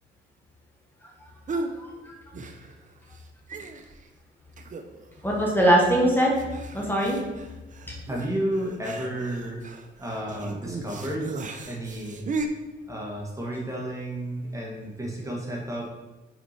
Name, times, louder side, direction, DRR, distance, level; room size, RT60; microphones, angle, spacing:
voice 1, 1.0-2.1 5.2-6.4 6.7-7.2 7.9-8.0, right 1 dB, 10° left, -2 dB, 1.4 m, -23 dB
sound 1, 1.5-1.8 2.3-2.9 3.1-3.2 3.5-4.1 4.6-5.1 5.4-5.5 6.4-12.5, right 3 dB, 40° right, 0.7 m, -36 dB
voice 2, 8.1-9.6 10.0-11.4 11.7-12.2 12.9-15.9, right 1 dB, 15° right, -2 dB, 1.5 m, -32 dB
5.9 x 4.5 x 4.3 m, 1.1 s
cardioid pair, 90°, 20 cm